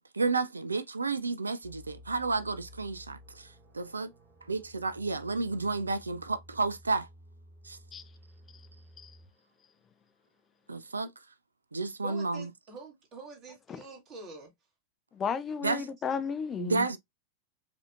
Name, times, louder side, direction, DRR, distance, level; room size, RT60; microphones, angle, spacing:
voice 1, 0.0-4.1 4.5-7.1 7.6-7.8 10.7-11.1 11.7-12.5 15.6-15.9 16.6-17.0, right 3 dB, 75° right, 0.3 m, -31 dB
sound 1, 1.6-9.3, equal, 15° right, 1.0 m, -54 dB
voice 2, 12.0-14.5, right 3 dB, 35° right, 1.9 m, -46 dB
voice 3, 15.1-17.0, left 6 dB, 25° left, 0.4 m, -34 dB
4.8 x 2.7 x 2.3 m
figure-of-eight pair, 90°, 0 cm